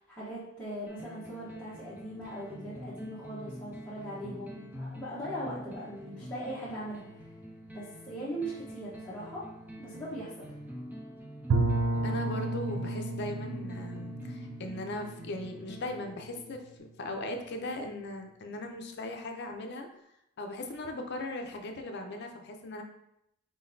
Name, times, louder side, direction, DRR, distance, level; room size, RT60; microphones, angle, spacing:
voice 1, 0.0-7.0 7.7-9.4 9.8-10.5, right 1 dB, 5° left, -11 dB, 1.0 m, -40 dB
sound 1, 0.9-16.8, equal, 10° right, 0.4 m, -46 dB
Bowed string instrument, 11.5-16.3, right 2 dB, 80° right, 0.4 m, -32 dB
voice 2, 12.0-19.9 20.4-22.8, left 2 dB, 55° left, 4 dB, 0.6 m, -38 dB
4.4 x 3.9 x 2.7 m, 0.80 s
head